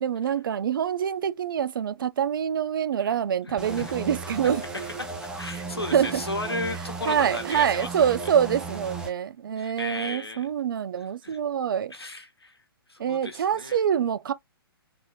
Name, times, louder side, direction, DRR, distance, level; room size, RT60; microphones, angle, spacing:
voice 1, 0.0-4.6 5.9-6.2 7.1-11.9 13.0-14.3, right 8 dB, 60° right, 0.4 m, -25 dB
voice 2, 3.4-3.9 4.3-4.4 4.7-8.1 9.6-10.5 11.0-11.4 11.9-12.6 12.9-13.8, left 2 dB, 85° left, 1.3 m, -35 dB
sound 1, 3.6-9.1, right 3 dB, 5° right, 0.6 m, -35 dB
3.7 x 2.8 x 2.6 m
figure-of-eight pair, 120°, 13 cm